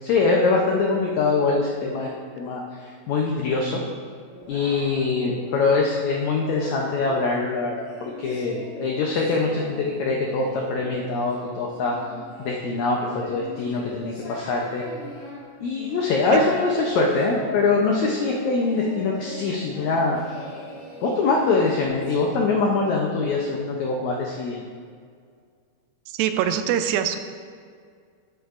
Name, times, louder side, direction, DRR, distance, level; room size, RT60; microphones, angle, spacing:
voice 1, 0.0-2.6 3.1-3.8 4.5-12.0 12.4-14.8 15.6-20.2 21.0-24.6, left 3 dB, 80° left, -1 dB, 1.7 m, -23 dB
Singing, 4.2-7.3 7.8-22.3, left 1 dB, 60° left, 3.0 m, -40 dB
voice 2, 26.1-27.2, right 9 dB, 85° right, 8 dB, 2.3 m, -23 dB
10.5 x 9.3 x 2.5 m, 2.1 s
omnidirectional pair, 4.2 m